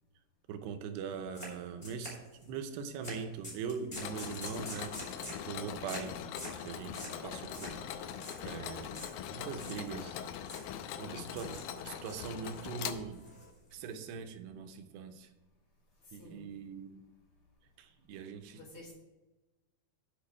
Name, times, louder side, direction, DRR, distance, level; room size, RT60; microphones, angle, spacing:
voice 1, 0.5-6.2 6.6-7.8 8.4-9.0 9.3-10.2 11.0-13.2 13.7-15.3 16.1-17.0 17.8-18.6, right 6 dB, 85° right, 7 dB, 2.9 m, -42 dB
sound 1, 1.3-1.5 1.8-2.5 3.0-3.2 3.4-5.5 5.9-6.1 6.4-6.6 6.9-7.2 7.5-7.8 8.1-8.4 8.9-9.1 9.5-10.1 10.5-10.7 11.2-11.7 12.0-12.7 13.1-13.9, left 1 dB, 10° left, 2.3 m, -45 dB
Mechanisms, 4.0-13.5, left 9 dB, 85° left, 2.2 m, -42 dB
voice 2, 16.1-16.5 18.1-18.2 18.5-18.9, left 1 dB, 50° left, -2 dB, 1.7 m, -52 dB
8.6 x 5.6 x 7.1 m, 1.1 s
omnidirectional pair, 4.7 m